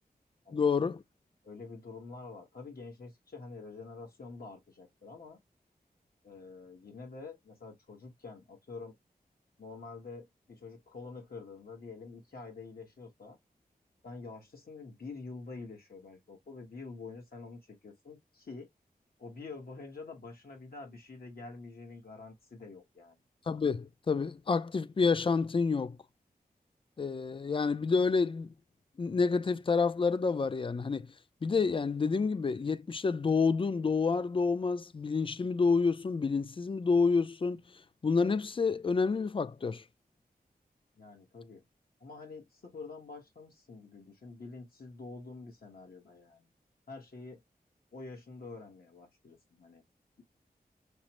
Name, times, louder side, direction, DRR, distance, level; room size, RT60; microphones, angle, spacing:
voice 1, 0.5-1.0 23.5-26.0 27.0-28.5 29.0-31.1 31.4-37.6 38.0-39.8, left 4 dB, 35° left, 0.3 m, -28 dB
voice 2, 1.4-5.4 6.2-8.9 9.6-13.4 14.0-18.7 19.2-23.2 41.0-41.6 42.0-46.5 46.9-47.4 47.9-49.8, left 3 dB, 70° left, 1.3 m, -47 dB
5.2 x 2.0 x 2.9 m
wide cardioid pair, 75°, 16 cm